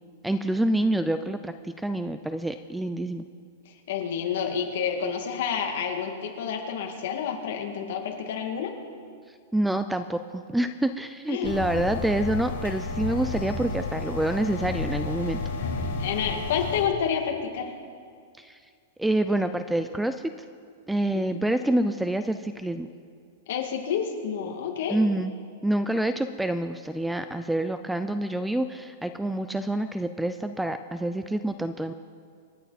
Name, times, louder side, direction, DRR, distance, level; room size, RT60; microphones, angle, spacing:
voice 1, 0.2-3.3 9.5-15.4 18.4-18.6 19.0-20.3 20.9-22.9 24.9-25.3 25.6-31.9, right 1 dB, 5° right, 11 dB, 0.3 m, -27 dB
voice 2, 3.9-8.7 11.3-11.6 16.0-17.7 21.1-21.4 23.5-25.0, left 7 dB, 55° left, 2 dB, 2.2 m, -29 dB
sound 1, 11.4-16.8, left 3 dB, 80° left, 3.7 m, -31 dB
27.5 x 9.2 x 4.2 m, 2.2 s
supercardioid pair, 170°, 0 cm